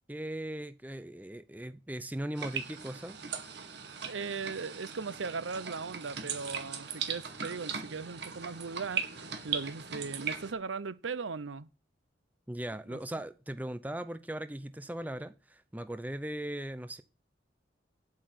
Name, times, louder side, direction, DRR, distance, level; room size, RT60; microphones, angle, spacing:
voice 1, 0.1-3.2 12.5-17.0, right 1 dB, 10° right, 0.6 m, -39 dB
sound 1, 2.4-10.5, right 6 dB, 65° right, 2.0 m, -39 dB
voice 2, 4.0-9.1 9.4-11.7 12.9-13.2, right 4 dB, 85° right, 0.7 m, -38 dB
8.8 x 8.5 x 7.7 m
head